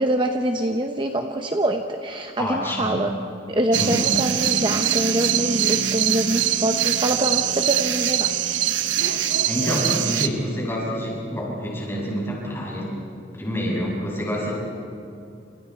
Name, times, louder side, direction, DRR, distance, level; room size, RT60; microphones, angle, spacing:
voice 1, 0.0-3.1 3.5-8.3, right 1 dB, 25° right, 4 dB, 0.9 m, -24 dB
voice 2, 2.4-3.0 3.7-4.0 8.8-13.0 13.3-14.5, equal, 15° left, -4 dB, 7.3 m, -27 dB
sound 1, 3.7-10.3, right 10 dB, 80° right, 1.0 m, -23 dB
30.0 x 28.5 x 4.6 m, 2.6 s
head